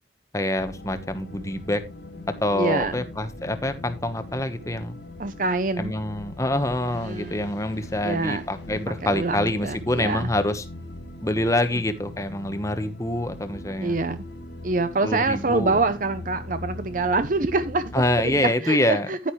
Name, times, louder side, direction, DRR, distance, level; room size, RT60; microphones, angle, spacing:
voice 1, 0.3-1.8 2.4-5.0 5.8-10.6 11.2-14.0 15.0-15.8 17.9-19.1, left 1 dB, 20° left, 1.1 m, -26 dB
sound 1, 0.6-18.5, left 2 dB, 85° left, 2.2 m, -40 dB
voice 2, 2.5-3.0 5.2-5.9 7.0-7.5 8.0-8.4 9.0-10.3 13.7-14.2 14.6-17.8 18.2-19.3, right 3 dB, 45° right, 0.7 m, -25 dB
10.5 x 10.0 x 3.2 m
head